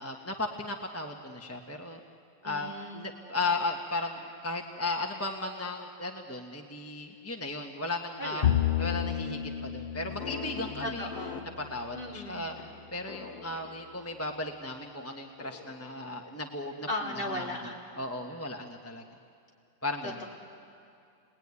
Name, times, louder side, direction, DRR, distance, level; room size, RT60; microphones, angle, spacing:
voice 1, 0.0-2.0 2.4-11.1 11.7-12.6 12.9-16.9 17.3-19.2 19.8-20.2, left 2 dB, 10° left, 2 dB, 0.9 m, -36 dB
voice 2, 2.4-3.1 8.2-8.5 10.8-11.4 11.9-12.4 16.9-17.8 20.0-20.2, left 1 dB, 25° left, -4 dB, 4.1 m, -36 dB
Bowed string instrument, 8.4-11.9, left 11 dB, 80° left, 0.4 m, -31 dB
sound 1, 10.1-14.6 15.4-16.9, left 5 dB, 55° left, 1.7 m, -45 dB
30.0 x 20.5 x 9.7 m, 2.5 s
omnidirectional pair, 2.1 m